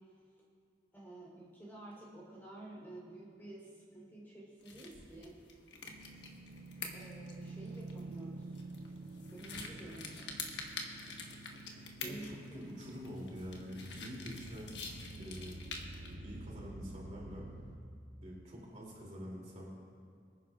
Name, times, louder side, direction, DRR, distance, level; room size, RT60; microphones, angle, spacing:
voice 1, 0.9-5.4 6.9-8.4 9.3-10.4 12.0-12.2 12.5-12.6, right 1 dB, 10° left, -4 dB, 3.5 m, -50 dB
sound 1, 4.6-16.1, left 4 dB, 80° left, 1.3 m, -48 dB
sound 2, 5.9-17.8, right 2 dB, 90° right, 0.9 m, -49 dB
voice 2, 12.0-14.8 15.2-15.6 16.0-17.5 18.2-19.7, equal, 40° right, -4 dB, 2.8 m, -46 dB
24.5 x 10.0 x 2.4 m, 2.3 s
head